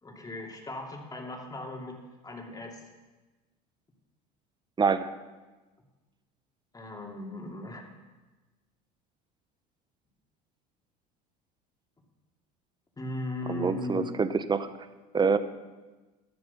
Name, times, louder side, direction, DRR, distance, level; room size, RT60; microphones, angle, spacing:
voice 1, 0.0-2.0 2.2-2.8 6.7-7.8 13.0-14.0, left 2 dB, 20° left, 1 dB, 2.9 m, -37 dB
voice 2, 4.8-5.1 13.5-14.7 15.1-15.4, right 5 dB, 20° right, 12 dB, 0.9 m, -26 dB
11.5 x 8.0 x 7.1 m, 1.2 s
hypercardioid pair, 85°, 21 cm